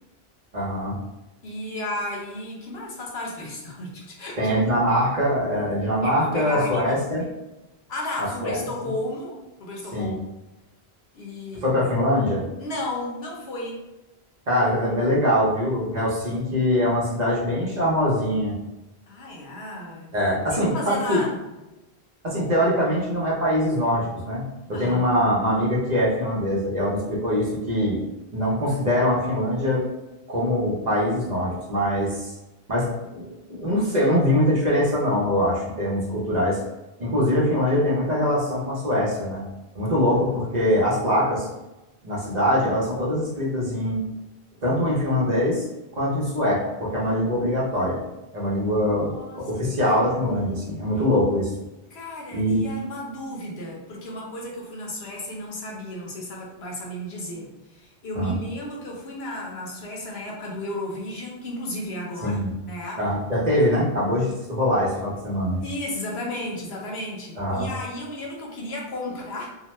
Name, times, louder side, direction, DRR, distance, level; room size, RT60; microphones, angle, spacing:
voice 1, 0.5-1.0 4.4-7.3 8.4-8.7 9.9-10.1 11.6-12.4 14.5-18.5 20.1-21.2 22.2-28.0 28.3-29.8 30.3-32.3 32.7-36.6 37.0-39.4 39.7-41.5 42.0-44.0 44.6-45.7 45.9-48.0 48.3-51.5 52.3-52.7 58.2-58.4 62.2-62.5 63.0-65.6 67.4-67.7, equal, 45° right, -5 dB, 0.8 m, -23 dB
voice 2, 1.4-4.7 6.0-7.3 7.9-10.2 11.1-11.9 12.6-13.8 19.1-20.1 20.5-21.4 24.7-25.0 48.8-49.8 50.3-50.9 51.9-63.0 65.6-69.5, left 1 dB, 75° left, -2 dB, 1.0 m, -34 dB
2.8 x 2.1 x 3.1 m, 1.0 s
omnidirectional pair, 1.1 m